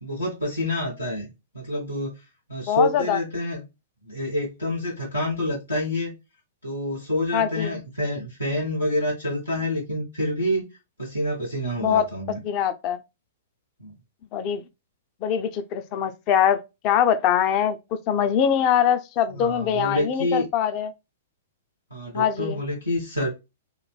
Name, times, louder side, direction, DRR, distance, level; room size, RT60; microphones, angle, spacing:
voice 1, 0.0-1.3 1.5-2.1 2.5-3.6 4.1-6.1 6.6-10.6 11.0-12.4 13.8-13.9 19.3-20.5 21.9-23.3, left 1 dB, 85° left, 1.2 m, -27 dB
voice 2, 2.7-3.2 7.3-7.8 11.8-12.1 12.4-13.0 14.3-14.6 15.2-16.6 16.8-17.8 18.1-20.9 22.1-22.6, left 9 dB, 35° left, 0.5 m, -22 dB
3.1 x 2.7 x 2.2 m
figure-of-eight pair, 110°, 0 cm